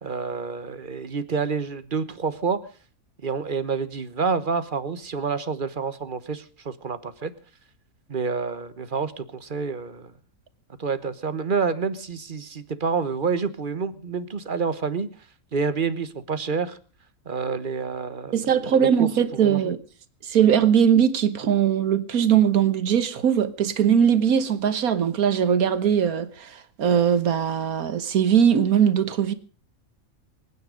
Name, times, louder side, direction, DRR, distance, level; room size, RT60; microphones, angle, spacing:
voice 1, 0.0-2.6 3.2-7.3 8.1-10.1 10.8-15.1 15.5-16.8 17.3-19.8, right 5 dB, 40° right, 1.2 m, -28 dB
voice 2, 18.3-19.8 20.2-29.3, right 8 dB, 85° right, 1.7 m, -20 dB
25.0 x 9.6 x 5.1 m
omnidirectional pair, 1.5 m